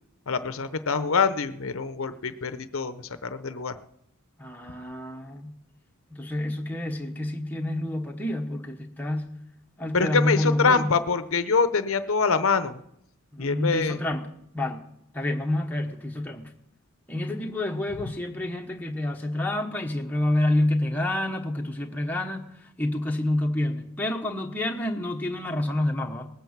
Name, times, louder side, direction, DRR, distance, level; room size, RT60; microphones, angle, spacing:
voice 1, 0.3-3.8 9.9-12.8 13.4-14.0 18.0-18.1, left 4 dB, 75° left, 0.8 m, -25 dB
voice 2, 4.4-5.5 6.1-9.4 9.8-10.9 13.3-14.2 14.5-14.8 15.1-16.5 17.1-26.3, left 1 dB, 10° left, 1.1 m, -28 dB
19.0 x 9.1 x 7.3 m
head